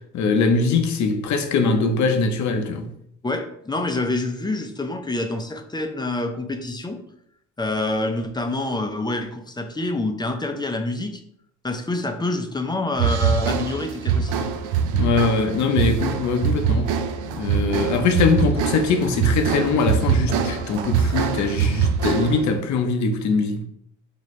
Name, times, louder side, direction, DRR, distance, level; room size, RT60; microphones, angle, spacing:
voice 1, 0.1-2.9 14.9-16.9 17.3-23.7, left 4 dB, 70° left, 0.7 m, -22 dB
voice 2, 3.2-7.0 7.6-11.2 11.6-14.5, left 2 dB, 15° left, 0.5 m, -27 dB
sound 1, 13.0-22.5, right 7 dB, 85° right, 0.5 m, -23 dB
4.2 x 2.8 x 3.1 m
cardioid pair, 90°, 30 cm